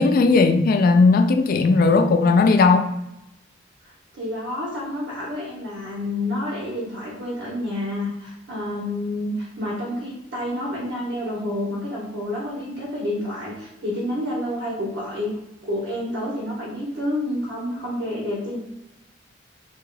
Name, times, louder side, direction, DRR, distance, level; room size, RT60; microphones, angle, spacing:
voice 1, 0.0-2.9, left 3 dB, 50° left, 6 dB, 0.3 m, -17 dB
voice 2, 3.8-15.3 15.6-18.6, left 1 dB, 75° right, -5 dB, 1.2 m, -29 dB
3.7 x 3.3 x 2.3 m, 0.89 s
head